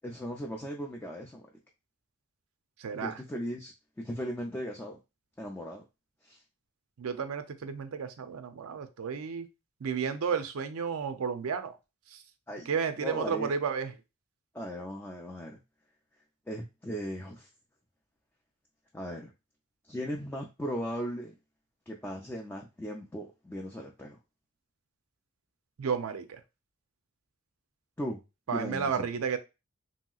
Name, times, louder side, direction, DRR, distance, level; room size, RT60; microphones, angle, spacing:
voice 1, 0.0-1.4 2.9-5.0 5.4-5.8 6.2-6.4 12.5-12.7 13.0-13.5 14.5-15.6 16.5-17.5 18.9-19.3 19.9-21.3 21.9-24.2 28.0-28.2 28.5-29.1, equal, 10° left, 0 dB, 0.3 m, -37 dB
voice 2, 2.8-3.2 7.0-9.5 9.8-11.8 12.1-12.2 12.7-13.9 25.8-26.4 28.5-29.4, right 6 dB, 85° right, 9 dB, 0.5 m, -32 dB
3.0 x 2.8 x 2.3 m, 0.26 s
head